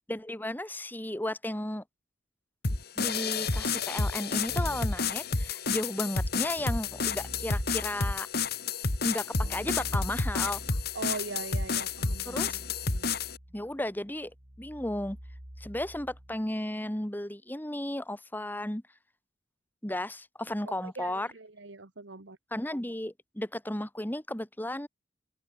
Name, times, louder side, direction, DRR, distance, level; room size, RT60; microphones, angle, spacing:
voice 1, 0.1-1.8 3.0-8.3 9.0-10.6 12.2-12.6 13.5-14.3 14.6-15.2 15.6-18.8 19.8-21.3 22.5-24.9, left 1 dB, 10° left, 1.4 m, -34 dB
sound 1, 2.6-13.4, left 4 dB, 55° left, 2.1 m, -30 dB
Keyboard (musical), 4.5-5.1 6.6-8.1 9.4-16.4, equal, 35° right, 3.5 m, -46 dB
voice 2, 10.9-12.7 12.9-13.1 20.6-22.4, right 3 dB, 70° right, 1.6 m, -41 dB
head